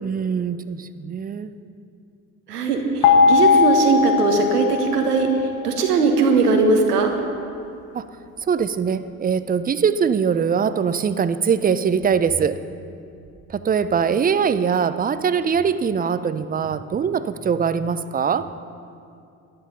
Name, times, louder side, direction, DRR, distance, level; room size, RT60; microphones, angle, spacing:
voice 1, 0.0-1.5 7.9-8.0 8.5-12.6 13.5-18.5, right 6 dB, 20° right, 13 dB, 0.5 m, -22 dB
voice 2, 2.5-7.1, right 4 dB, 85° right, 4 dB, 1.5 m, -19 dB
sound 1, 3.0-6.0, left 5 dB, 60° left, 1.8 m, -19 dB
13.0 x 11.0 x 5.6 m, 2.5 s
hypercardioid pair, 60°, 46 cm